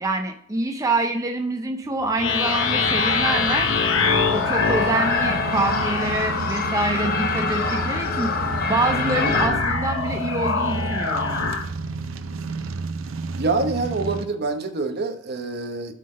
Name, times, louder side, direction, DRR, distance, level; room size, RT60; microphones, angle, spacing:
voice 1, 0.0-3.7 4.3-8.3 8.7-11.4, right 2 dB, 15° right, 4 dB, 0.5 m, -26 dB
sound 1, 2.0-14.3, right 3 dB, 85° right, 0.6 m, -32 dB
sound 2, 2.2-11.6, left 5 dB, 75° left, 1.1 m, -25 dB
sound 3, 2.3-9.5, left 4 dB, 50° left, 0.8 m, -28 dB
voice 2, 13.4-15.9, right 3 dB, 55° right, 7 dB, 0.9 m, -26 dB
8.3 x 3.7 x 6.3 m, 0.65 s
head